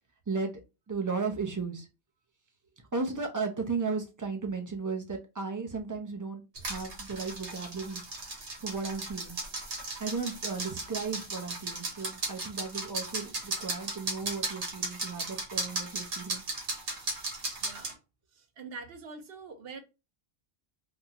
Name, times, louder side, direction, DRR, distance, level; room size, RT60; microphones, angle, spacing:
voice 1, 0.9-1.9 2.9-8.0 8.6-9.4 10.0-16.4, right 4 dB, 30° right, 0.3 m, -35 dB
sound 1, 6.5-17.9, right 3 dB, 85° right, 1.3 m, -36 dB
voice 2, 17.6-18.0 18.3-19.8, right 4 dB, 65° right, 0.8 m, -44 dB
3.7 x 2.1 x 2.8 m
omnidirectional pair, 1.1 m